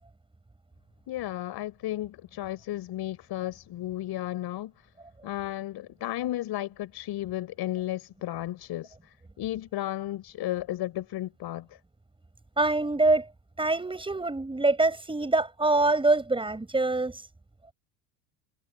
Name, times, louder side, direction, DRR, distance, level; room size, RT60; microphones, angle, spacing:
voice 1, 1.1-4.7 5.2-11.8, left 14 dB, 50° left, 5.8 m, -34 dB
voice 2, 12.6-13.3 13.6-17.2, right 2 dB, 10° right, 6.5 m, -24 dB
supercardioid pair, 120°, 50 cm